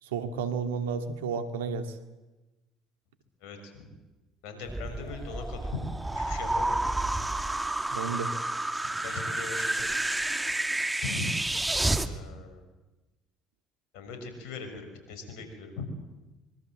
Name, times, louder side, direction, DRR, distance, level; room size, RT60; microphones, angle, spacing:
voice 1, 0.0-2.0 7.9-8.3, right 6 dB, 85° right, 8 dB, 2.2 m, -32 dB
voice 2, 3.4-3.9 4.4-5.9 6.1-6.8 8.8-9.9 11.0-11.4 12.1-12.6 13.9-15.9, left 4 dB, 75° left, 6 dB, 6.2 m, -39 dB
sound 1, 4.7-12.1, right 2 dB, 15° right, 2.3 m, -30 dB
25.0 x 23.0 x 7.9 m, 1.1 s
hypercardioid pair, 60°, 0 cm